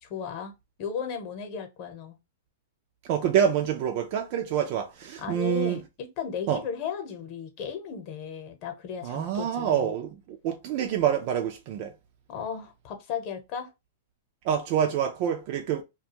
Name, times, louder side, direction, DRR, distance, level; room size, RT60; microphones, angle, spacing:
voice 1, 0.0-0.5 0.8-2.2 5.2-9.9 12.3-13.7, left 7 dB, 40° left, 0.9 m, -35 dB
voice 2, 3.0-5.8 6.5-6.6 9.0-11.9 14.4-15.8, right 9 dB, 45° right, 0.4 m, -27 dB
2.4 x 2.3 x 2.8 m
hypercardioid pair, 150°, 0 cm